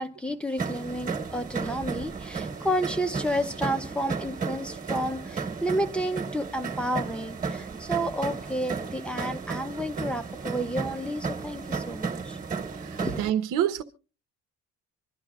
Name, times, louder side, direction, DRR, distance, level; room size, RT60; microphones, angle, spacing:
voice 1, 0.0-12.4 13.0-13.2, equal, 5° left, 0.7 m, -31 dB
sound 1, 0.6-13.3, right 5 dB, 25° right, 1.4 m, -34 dB
voice 2, 12.6-13.8, right 11 dB, 85° right, 1.1 m, -28 dB
26.0 x 12.0 x 2.4 m
cardioid pair, 165°, 30 cm